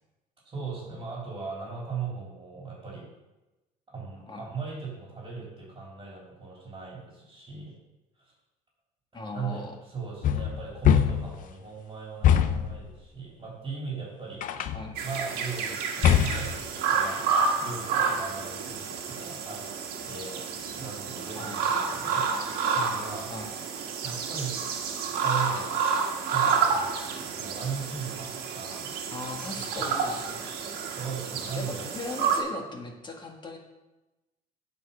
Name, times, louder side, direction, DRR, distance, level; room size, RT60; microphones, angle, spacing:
voice 1, 0.4-3.1 3.9-7.7 8.2-8.3 9.3-14.4 15.0-17.2 17.6-19.6 20.1-20.4 20.7-22.2 22.7-23.3 24.0-24.6 25.2-25.8 26.3-28.9 29.5-29.9 30.9-31.9, right 5 dB, 25° right, -4 dB, 3.3 m, -38 dB
voice 2, 9.1-9.7 14.7-15.0 21.3-21.6 23.3-23.5 29.1-30.5 31.5-33.6, left 2 dB, 30° left, 2 dB, 1.7 m, -38 dB
sound 1, 10.2-11.4 12.2-12.8 14.4-14.9 16.0-16.6, left 10 dB, 55° left, 0.6 m, -22 dB
sound 2, 15.0-32.4, right 6 dB, 75° right, 1.5 m, -30 dB
8.3 x 4.5 x 7.1 m, 1.0 s
cardioid pair, 100°, 16 cm